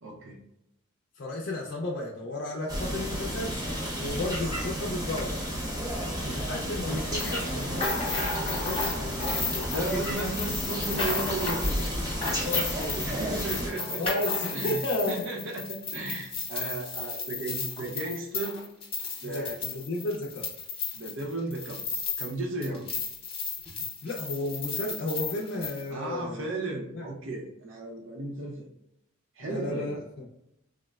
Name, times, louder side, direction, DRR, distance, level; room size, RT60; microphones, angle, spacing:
voice 1, 0.0-0.4 6.0-6.4 9.7-11.9 13.0-14.0 14.5-14.8 15.1-18.6 19.2-19.6 20.9-21.8 22.2-22.9 25.9-28.7 29.4-29.9, right 2 dB, 70° right, -1 dB, 0.6 m, -35 dB
voice 2, 1.2-5.4 6.3-10.3 12.4-13.0 14.0-15.2 19.2-20.5 22.6-22.8 24.0-26.5 26.9-27.0 29.4-30.0, left 1 dB, 55° left, -1 dB, 0.4 m, -33 dB
sound 1, 2.7-13.7, equal, 20° right, 0.7 m, -32 dB
sound 2, 7.2-22.4 22.6-25.8, left 4 dB, 30° left, 0.7 m, -34 dB
3.5 x 2.0 x 2.3 m, 0.82 s
head